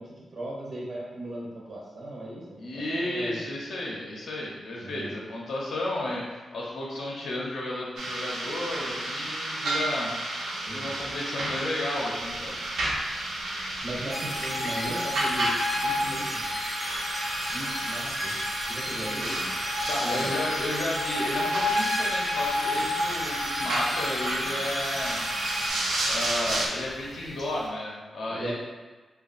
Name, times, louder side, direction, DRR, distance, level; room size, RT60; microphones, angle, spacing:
voice 1, 0.0-2.4 2.7-3.5 4.8-5.1 10.7-11.0 13.8-15.5 15.8-16.4 17.5-18.4 18.7-19.5 20.0-20.6 28.3-28.5, right 1 dB, 45° right, -5 dB, 0.6 m, -37 dB
voice 2, 2.6-10.1 10.7-12.5 19.9-25.2 26.0-28.5, left 1 dB, 70° left, -4 dB, 0.6 m, -33 dB
sound 1, 8.0-26.7, right 1 dB, 85° right, 0.7 m, -31 dB
sound 2, 12.1-27.7, left 1 dB, 35° left, 0.8 m, -48 dB
sound 3, 14.1-25.7, left 2 dB, 10° left, 0.4 m, -32 dB
3.5 x 2.2 x 3.9 m, 1.3 s
wide cardioid pair, 175°, 0 cm